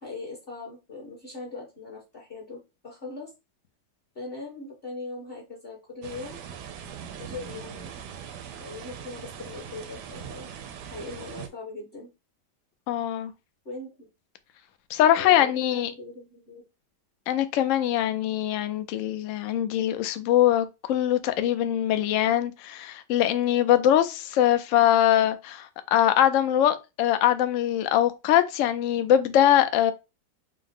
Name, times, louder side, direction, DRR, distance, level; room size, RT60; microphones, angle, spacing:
voice 1, 0.0-3.3 4.1-6.4 7.2-7.9 8.6-10.5 10.9-12.1 13.6-14.1 15.1-16.6, left 3 dB, 40° left, 1.1 m, -40 dB
sound 1, 6.0-11.5, right 8 dB, 75° right, 1.1 m, -41 dB
voice 2, 12.9-13.3 14.9-15.9 17.3-29.9, left 11 dB, 85° left, 0.6 m, -22 dB
4.7 x 2.1 x 3.5 m
omnidirectional pair, 1.9 m